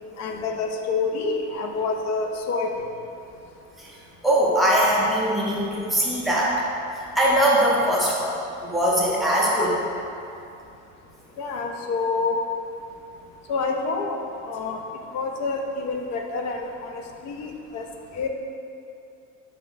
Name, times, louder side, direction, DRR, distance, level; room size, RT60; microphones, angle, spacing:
voice 1, 0.2-2.7 11.4-12.4 13.5-14.2 14.4-14.8 15.1-17.9 18.1-18.3, left 4 dB, 55° left, 3 dB, 0.5 m, -27 dB
voice 2, 4.2-6.6 6.9-8.4 8.6-9.8, equal, ahead, -6 dB, 0.5 m, -21 dB
4.4 x 2.9 x 3.8 m, 2.6 s
cardioid pair, 175°, 31 cm